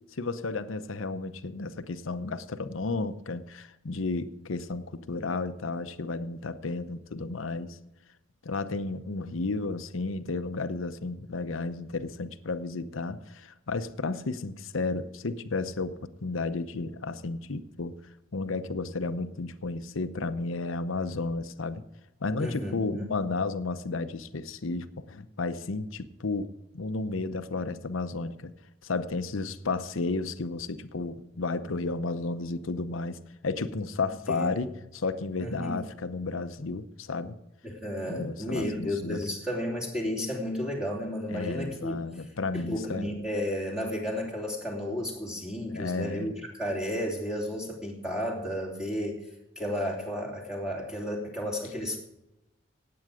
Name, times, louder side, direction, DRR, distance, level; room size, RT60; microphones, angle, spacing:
voice 1, 0.1-7.8 8.4-15.9 16.2-17.9 18.3-21.8 22.2-28.5 28.8-33.2 33.4-34.7 34.9-37.4 38.1-39.2 41.3-43.1 45.7-46.3, left 3 dB, 85° left, 11 dB, 0.8 m, -32 dB
voice 2, 22.4-23.1 34.3-34.8 35.4-35.8 37.6-42.0 42.5-49.3 49.6-52.0, equal, 5° right, -3 dB, 2.9 m, -33 dB
17.0 x 8.7 x 5.0 m, 0.91 s
head